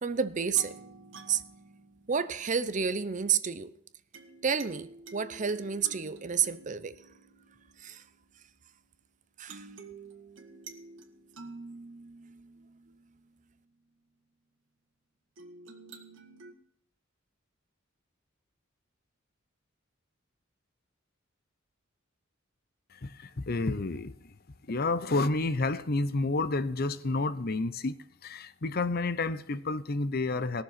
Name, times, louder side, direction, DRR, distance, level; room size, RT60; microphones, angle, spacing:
voice 1, 0.0-0.7 1.3-1.4 2.1-3.7 4.4-6.9 7.8-8.0 9.4-9.6, right 6 dB, 40° right, 0.7 m, -30 dB
sound 1, 0.5-2.8 4.1-8.9 9.5-13.6 15.4-16.5, right 4 dB, 65° right, 1.7 m, -49 dB
voice 2, 22.9-24.1 24.7-30.6, left 3 dB, 50° left, 0.7 m, -30 dB
18.5 x 6.9 x 5.8 m
head